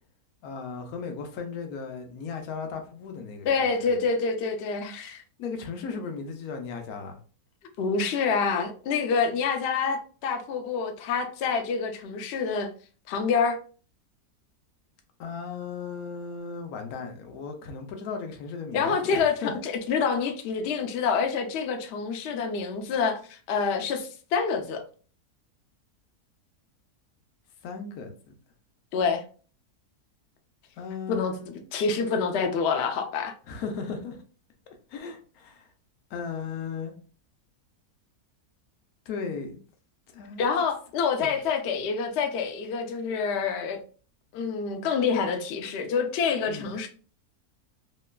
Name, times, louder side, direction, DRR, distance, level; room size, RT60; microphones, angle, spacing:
voice 1, 0.4-3.5 3.8-4.0 5.4-7.2 15.2-19.5 27.6-28.1 30.8-31.5 33.5-34.2 34.9-35.7 36.1-36.9 39.1-39.6 40.1-40.4 41.2-41.3 46.5-46.7, left 5 dB, 75° left, 1.0 m, -36 dB
voice 2, 3.5-5.2 7.8-12.7 13.1-13.6 18.7-24.8 28.9-29.2 31.1-31.4 31.7-33.3 40.4-43.8 44.3-46.9, left 5 dB, 90° left, 0.5 m, -27 dB
3.0 x 2.1 x 2.2 m
omnidirectional pair, 1.7 m